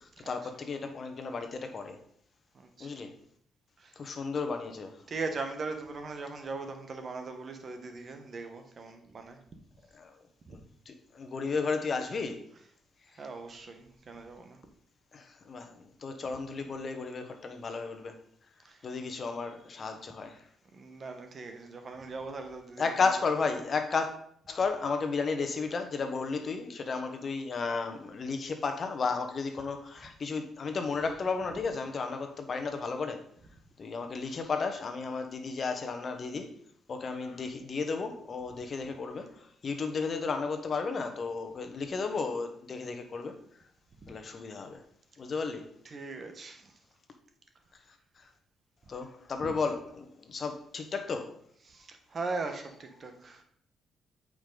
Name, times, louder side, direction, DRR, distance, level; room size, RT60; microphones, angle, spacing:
voice 1, 0.3-2.0 2.8-3.1 4.0-4.9 10.0-10.1 10.9-12.4 15.1-15.7 16.0-18.1 18.8-20.4 22.8-24.2 24.5-33.2 33.8-36.5 36.9-39.3 39.6-43.3 44.1-44.8 45.2-45.7 48.9-51.3, left 4 dB, 45° left, 1.1 m, -33 dB
voice 2, 2.5-2.9 3.8-4.0 5.0-9.4 10.5-10.6 13.2-14.6 18.6-18.8 20.7-23.1 44.0-44.1 45.8-46.7 49.4-49.5 51.6-53.4, right 3 dB, 45° right, 1.2 m, -40 dB
8.6 x 5.1 x 3.9 m
cardioid pair, 90°, 0 cm